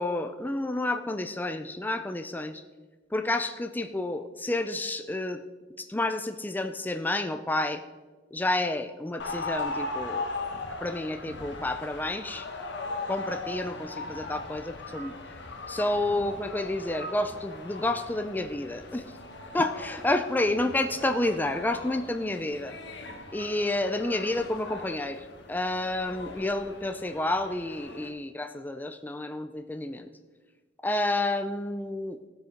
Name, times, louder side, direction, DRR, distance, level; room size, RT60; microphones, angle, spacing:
voice 1, 0.0-2.6 3.1-5.4 5.9-7.8 8.3-10.3 10.8-12.5 13.1-15.1 15.7-19.1 19.5-22.7 23.3-30.1 30.8-32.2, left 2 dB, 10° left, 6 dB, 0.4 m, -30 dB
sound 1, 9.2-28.1, left 3 dB, 60° left, 1.2 m, -39 dB
16.0 x 6.4 x 5.0 m, 1.3 s
head